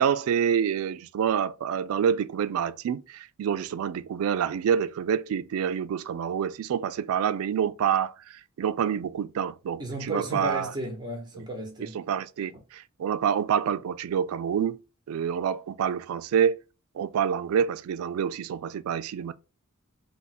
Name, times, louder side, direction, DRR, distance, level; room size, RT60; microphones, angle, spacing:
voice 1, 0.0-9.8 10.1-10.7 11.4-11.5 11.9-14.8 15.1-16.6 17.0-19.3, right 8 dB, 85° right, 0.3 m, -27 dB
voice 2, 9.8-12.0, right 1 dB, 20° right, 0.9 m, -34 dB
3.4 x 2.1 x 4.1 m
head